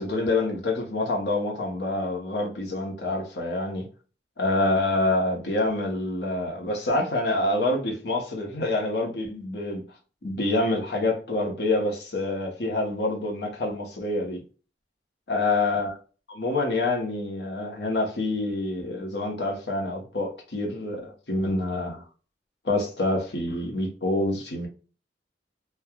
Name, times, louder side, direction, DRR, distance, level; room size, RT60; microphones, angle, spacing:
voice 1, 0.0-3.9 4.4-9.8 10.2-14.4 15.3-16.0 16.3-22.0 22.6-24.7, left 2 dB, 70° left, 0.9 m, -27 dB
3.2 x 2.3 x 2.3 m
head